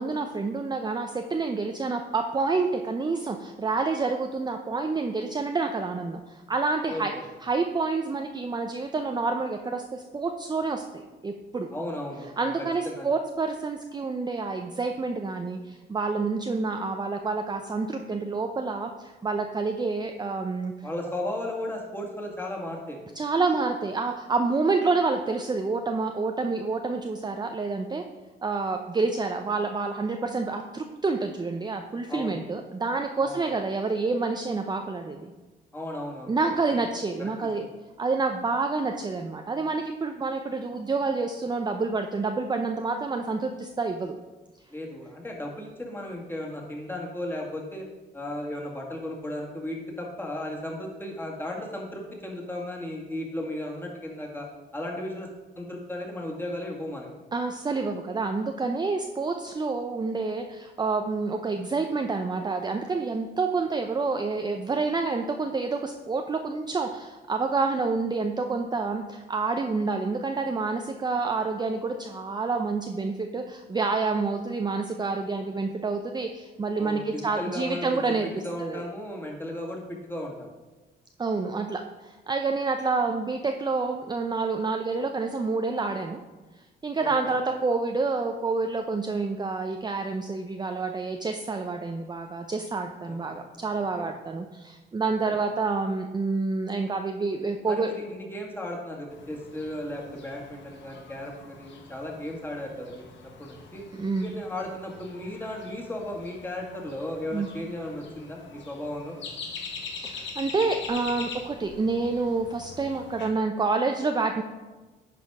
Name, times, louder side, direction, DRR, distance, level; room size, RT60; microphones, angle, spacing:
voice 1, 0.0-7.1 7.4-11.7 12.4-20.7 23.2-28.0 28.4-35.3 36.3-37.7 38.0-44.2 57.3-78.3 78.6-78.9 81.2-86.2 86.8-97.9 103.9-104.3 107.3-107.5 110.0-114.4, right 4 dB, 20° right, 4 dB, 0.5 m, -28 dB
voice 2, 6.9-7.2 11.7-12.5 12.8-13.1 20.8-23.0 32.1-32.4 33.2-33.4 35.7-36.4 37.2-37.5 44.7-47.9 48.1-54.5 54.7-55.3 55.6-57.1 76.8-80.5 87.2-87.4 93.0-93.5 94.0-94.1 95.2-95.4 97.6-103.8 104.2-109.2, left 1 dB, 10° left, -1 dB, 2.0 m, -35 dB
sound 1, 99.1-113.3, left 4 dB, 70° left, 1.3 m, -43 dB
10.5 x 4.2 x 4.8 m, 1.2 s
cardioid pair, 90°, 20 cm